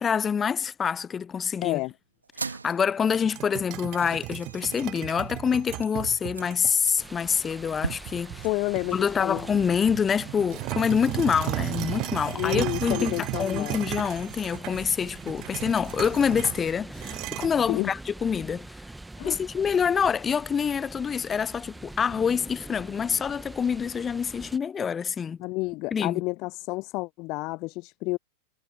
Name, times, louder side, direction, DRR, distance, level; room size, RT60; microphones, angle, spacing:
voice 1, 0.0-1.8 2.4-8.5 8.9-18.7 19.2-25.4 25.9-26.2, left 7 dB, 20° left, 1.0 m, -26 dB
voice 2, 1.6-1.9 8.4-9.4 12.3-13.8 17.7-17.9 19.2-19.4 25.4-28.2, left 23 dB, 40° left, 0.6 m, -30 dB
sound 1, 2.2-11.8, right 4 dB, 75° right, 3.1 m, -42 dB
sound 2, 3.1-6.7 7.3-7.4 7.9-9.0 9.4-17.5, right 21 dB, 40° right, 0.4 m, -35 dB
sound 3, 7.0-24.6, right 2 dB, 5° right, 1.6 m, -44 dB
figure-of-eight pair, 90°, 0 cm